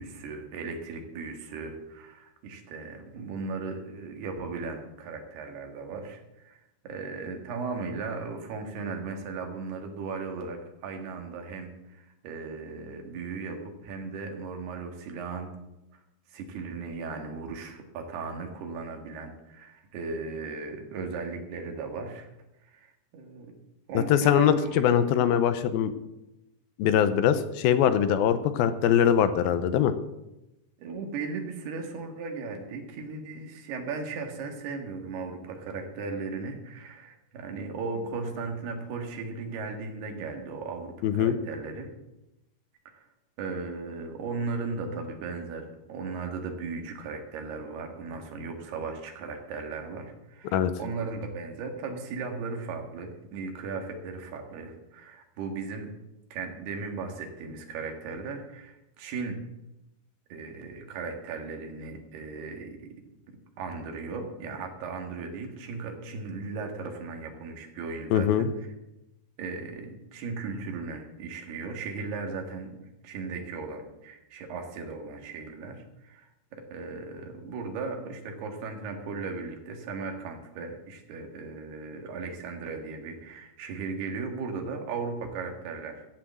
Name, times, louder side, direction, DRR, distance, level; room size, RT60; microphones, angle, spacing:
voice 1, 0.0-15.5 16.3-22.3 22.6-23.5 23.9-25.0 30.8-41.9 42.9-43.0 43.4-55.9 56.3-59.4 60.3-63.0 63.6-68.5 69.4-86.1, right 4 dB, 85° right, 3 dB, 4.0 m, -37 dB
voice 2, 23.9-25.9 26.8-29.9 41.0-41.4 50.5-50.7 68.1-68.5, left 9 dB, 80° left, 11 dB, 2.5 m, -22 dB
15.0 x 8.4 x 7.6 m, 0.93 s
omnidirectional pair, 4.5 m